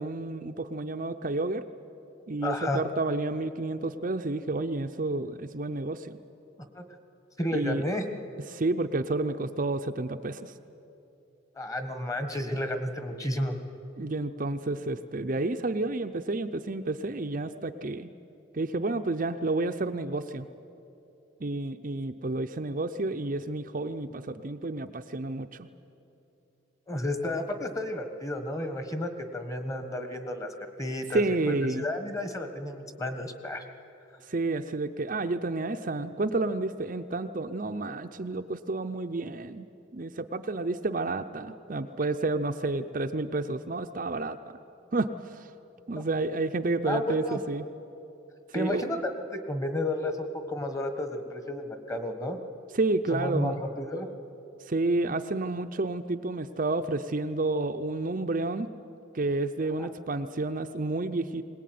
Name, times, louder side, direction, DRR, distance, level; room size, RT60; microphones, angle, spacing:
voice 1, 0.0-1.6 2.3-6.1 7.5-7.8 8.5-10.5 14.0-18.1 18.5-20.5 21.4-25.7 31.1-31.9 34.3-39.7 39.9-44.4 44.9-45.5 45.9-47.6 48.5-48.9 52.7-53.6 54.6-58.7 59.1-61.4, right 2 dB, 40° right, 7 dB, 0.6 m, -30 dB
voice 2, 2.4-2.8 6.7-6.8 7.4-8.2 11.5-13.6 26.9-30.5 30.8-33.6 46.9-47.4 48.5-52.4 53.1-54.1 59.8-59.9, left 1 dB, 15° left, 7 dB, 1.5 m, -32 dB
21.5 x 19.0 x 9.4 m, 2.8 s
head